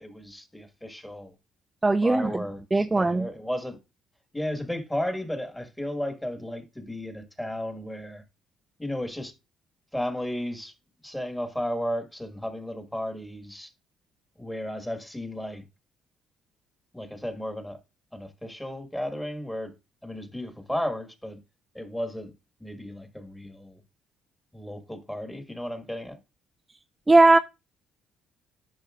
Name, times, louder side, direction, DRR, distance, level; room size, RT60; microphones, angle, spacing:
voice 1, 0.0-1.3 2.0-3.8 4.3-8.2 8.8-9.3 9.9-10.7 11.0-13.7 14.4-15.6 16.9-17.8 18.1-19.7 20.0-21.4 21.7-22.3 22.6-23.8 24.5-26.2, left 1 dB, 5° left, 1.5 m, -34 dB
voice 2, 1.8-2.3 2.7-3.3 27.1-27.4, right 2 dB, 20° right, 0.4 m, -18 dB
10.5 x 5.4 x 2.4 m
cardioid pair, 90°, 0 cm